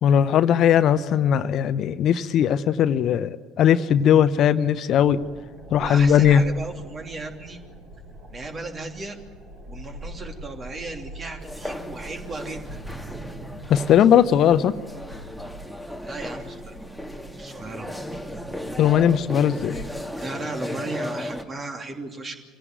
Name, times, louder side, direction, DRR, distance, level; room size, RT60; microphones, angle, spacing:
voice 1, 0.0-5.2 5.7-6.4 13.7-14.7 18.8-19.8, left 9 dB, 50° left, 13 dB, 0.8 m, -19 dB
sound 1, 5.0-19.8, right 1 dB, 55° right, 6.0 m, -42 dB
voice 2, 5.8-7.6 8.3-9.2 9.7-12.8 16.0-16.8 17.4-17.9 20.1-22.4, right 2 dB, 35° right, 4 dB, 3.0 m, -35 dB
sound 2, 11.4-21.4, left 1 dB, ahead, 1.9 m, -36 dB
25.0 x 17.0 x 9.4 m, 1.4 s
figure-of-eight pair, 60°, 0 cm